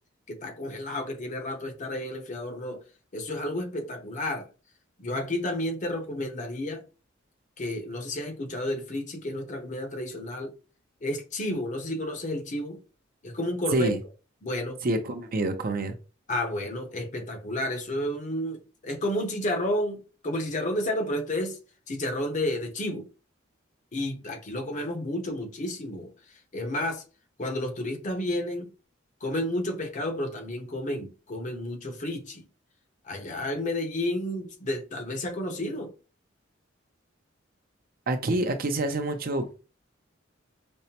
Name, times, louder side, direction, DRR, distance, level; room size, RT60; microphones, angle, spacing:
voice 1, 0.3-2.8 3.1-4.5 5.0-6.8 7.6-10.5 11.0-12.8 13.2-13.9 14.4-14.8 16.3-21.6 21.9-23.1 23.9-26.1 26.5-27.0 27.4-28.7 29.2-32.5 33.0-35.9, left 1 dB, 40° left, 0.7 m, -31 dB
voice 2, 14.8-15.9 38.1-39.6, right 1 dB, 50° right, 0.6 m, -27 dB
5.2 x 2.1 x 2.8 m
head